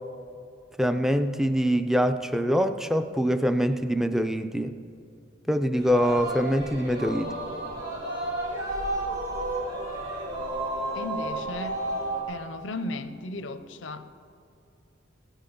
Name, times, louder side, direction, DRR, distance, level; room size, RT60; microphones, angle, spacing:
voice 1, 0.8-4.8 5.5-7.4, equal, ahead, 9 dB, 0.4 m, -24 dB
Singing, 5.8-12.2, right 1 dB, 75° right, 3.4 m, -32 dB
voice 2, 10.9-11.8 12.3-14.1, left 2 dB, 80° left, 10 dB, 0.7 m, -35 dB
16.5 x 8.9 x 5.3 m, 2.7 s
head